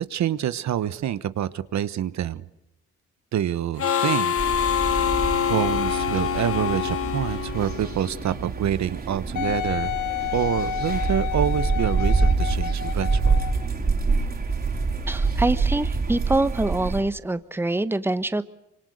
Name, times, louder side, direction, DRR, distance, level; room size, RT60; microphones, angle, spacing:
voice 1, 0.0-2.5 3.3-4.3 4.8-5.1 5.5-10.0 10.3-13.4, right 10 dB, 65° right, 14 dB, 1.2 m, -27 dB
Harmonica, 3.8-8.3, left 8 dB, 50° left, 1.2 m, -25 dB
sound 1, 4.4-17.0, right 4 dB, 30° right, 4.1 m, -26 dB
Wind instrument woodwind instrument, 9.4-13.7 14.3-14.4, left 11 dB, 80° left, 1.7 m, -30 dB
voice 2, 15.1-18.4, right 2 dB, 5° right, 13 dB, 1.2 m, -25 dB
26.5 x 26.0 x 6.5 m, 0.85 s
cardioid pair, 90°, 30 cm